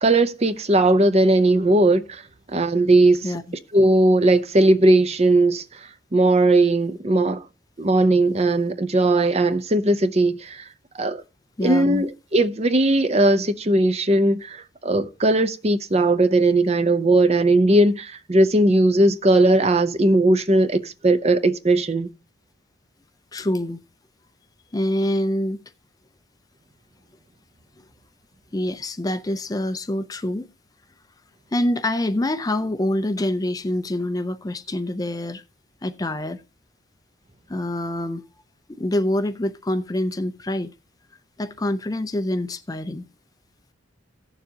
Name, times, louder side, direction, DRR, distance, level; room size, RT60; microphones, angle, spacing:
voice 1, 0.0-2.2 2.5-3.3 3.7-5.6 6.1-7.4 7.8-10.7 11.0-11.2 11.6-22.1, right 2 dB, 30° right, 0.6 m, -18 dB
voice 2, 11.6-12.0 23.3-23.8 24.7-25.6 28.5-30.5 31.5-35.4 35.8-36.4 37.5-38.2 38.7-40.7 41.4-43.1, left 1 dB, 20° left, 0.4 m, -25 dB
16.5 x 6.9 x 2.8 m
head